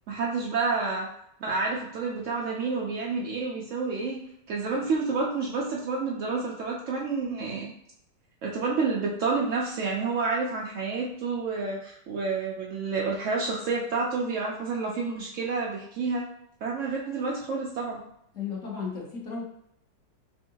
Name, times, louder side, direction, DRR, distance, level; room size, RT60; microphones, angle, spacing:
voice 1, 0.1-1.1 1.4-4.2 4.5-7.7 8.4-16.3 16.6-18.0, right 4 dB, 85° right, -3 dB, 0.6 m, -29 dB
voice 2, 18.3-19.4, left 5 dB, 55° left, -3 dB, 1.1 m, -34 dB
3.6 x 3.5 x 2.7 m, 0.72 s
omnidirectional pair, 1.9 m